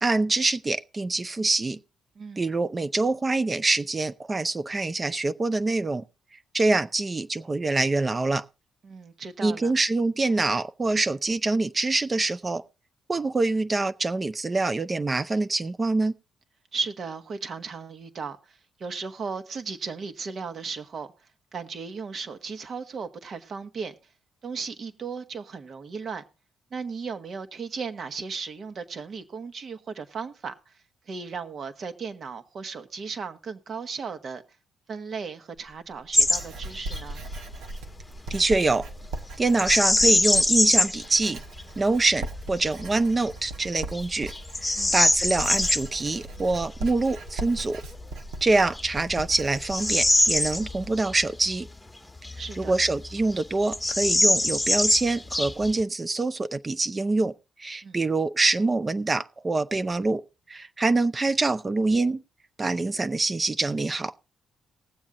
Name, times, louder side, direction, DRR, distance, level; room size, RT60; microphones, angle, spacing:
voice 1, 0.0-1.8 2.4-6.0 6.5-8.4 9.4-12.6 13.1-16.1 38.3-38.9 39.4-41.4 41.8-44.3 44.9-47.8 48.4-51.7 52.6-57.3 57.6-60.2 60.5-62.2 62.6-64.1, right 3 dB, 25° right, 0.5 m, -25 dB
voice 2, 8.8-9.7 16.7-21.1 21.5-23.9 24.4-26.2 26.7-30.8 31.1-34.4 34.9-37.2 44.7-44.9 52.4-52.7 57.8-58.0, right 5 dB, 50° right, 1.4 m, -36 dB
Writing, 35.6-50.9, right 2 dB, 85° right, 1.5 m, -39 dB
Bird vocalization bird call bird song, 36.1-36.4 36.7-37.0 39.5-41.0 41.6-41.7 42.3-42.7 43.3-43.4 43.9-45.8 47.9-48.0 48.7-51.1 51.5-51.6 52.2-53.0 53.3-53.4 53.7-55.8, left 1 dB, 5° left, 1.3 m, -23 dB
19.0 x 7.3 x 3.8 m
cardioid pair, 90°, 0 cm